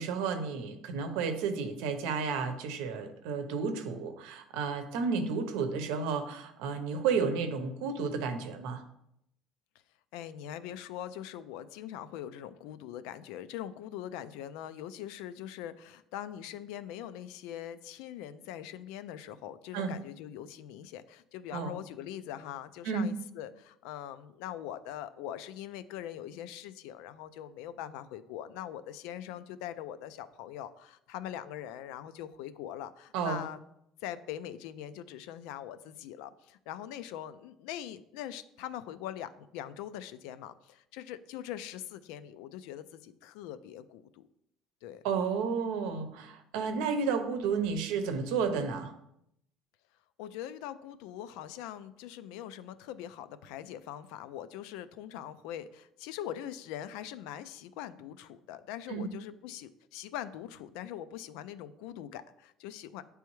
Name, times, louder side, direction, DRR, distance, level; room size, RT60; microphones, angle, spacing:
voice 1, 0.0-8.8 19.7-19.9 21.5-21.7 22.8-23.1 33.1-33.4 45.0-48.9 58.9-59.1, right 5 dB, 85° right, 7 dB, 0.7 m, -32 dB
voice 2, 10.1-33.6 34.0-44.3 44.8-45.0 50.2-63.0, left 11 dB, 80° left, 13 dB, 0.4 m, -42 dB
9.4 x 3.4 x 3.1 m, 0.78 s
cardioid pair, 160°, 0 cm